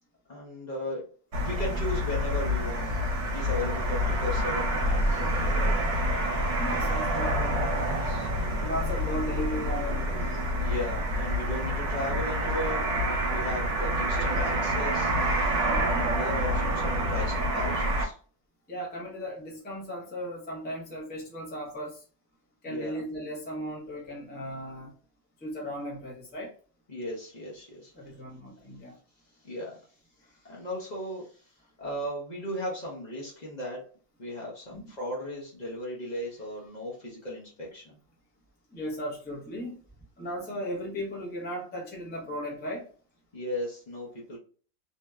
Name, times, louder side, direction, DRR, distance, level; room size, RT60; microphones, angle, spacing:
voice 1, 0.3-1.1 1.4-2.9 3.3-5.8 8.0-8.3 8.6-8.7 10.6-12.9 13.3-15.1 16.0-18.2 22.7-23.0 26.9-27.9 29.4-29.8 30.4-31.4 31.8-33.9 34.2-38.0 43.3-44.4, left 1 dB, 40° left, -4 dB, 0.8 m, -36 dB
sound 1, 1.3-18.0, equal, 70° right, 1.0 m, -27 dB
voice 2, 6.6-7.6 8.6-10.3 15.7-16.0 18.7-22.0 22.6-24.9 25.4-26.5 27.9-29.0 34.7-34.9 38.7-39.8 40.2-42.9, equal, 15° left, -4 dB, 0.4 m, -36 dB
2.7 x 2.1 x 2.2 m, 0.41 s
omnidirectional pair, 1.3 m